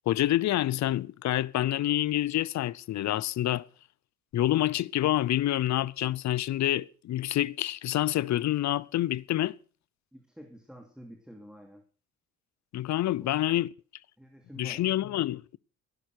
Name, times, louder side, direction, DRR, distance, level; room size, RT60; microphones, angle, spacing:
voice 1, 0.1-3.7 4.3-9.6 12.7-13.7 14.6-15.6, left 14 dB, 65° left, 0.7 m, -27 dB
voice 2, 10.1-11.8 14.2-14.9, equal, ahead, 2.6 m, -49 dB
15.5 x 11.0 x 6.5 m
cardioid pair, 90°, 30 cm